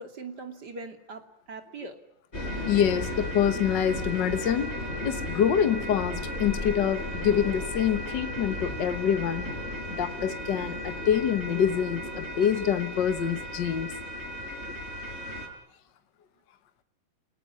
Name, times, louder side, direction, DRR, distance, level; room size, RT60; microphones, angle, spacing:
voice 1, 0.0-2.0, right 3 dB, 50° right, 6 dB, 3.2 m, -41 dB
sound 1, 2.3-15.5, left 1 dB, 30° left, 5.4 m, -35 dB
voice 2, 2.7-4.8 5.0-9.5 9.9-13.9, left 9 dB, 60° left, 10 dB, 1.8 m, -26 dB
sound 2, 5.8-10.2, left 1 dB, 10° left, 1.5 m, -43 dB
29.5 x 17.5 x 9.8 m, 0.80 s
omnidirectional pair, 2.3 m